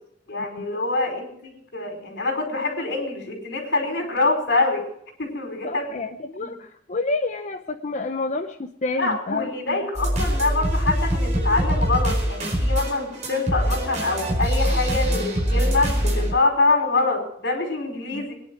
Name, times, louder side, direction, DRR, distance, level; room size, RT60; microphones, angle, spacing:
voice 1, 0.3-4.9 5.2-5.8 6.4-6.5 8.9-18.3, left 3 dB, 65° left, 3 dB, 5.1 m, -25 dB
voice 2, 5.6-9.8 18.1-18.3, left 3 dB, 40° left, 6 dB, 0.8 m, -29 dB
sound 1, 9.9-16.3, equal, 40° right, 4.9 m, -23 dB
22.5 x 10.5 x 4.7 m, 0.69 s
head